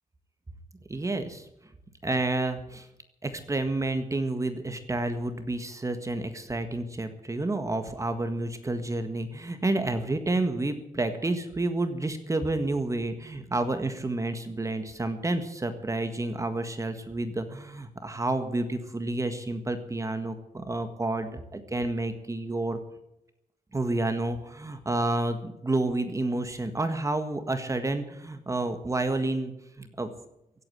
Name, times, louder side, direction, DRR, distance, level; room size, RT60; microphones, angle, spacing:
voice 1, 0.9-1.4 2.0-2.9 3.2-22.8 23.7-30.1, right 2 dB, 20° right, 8 dB, 1.7 m, -30 dB
16.5 x 8.8 x 9.6 m, 0.84 s
wide cardioid pair, 125°, 15 cm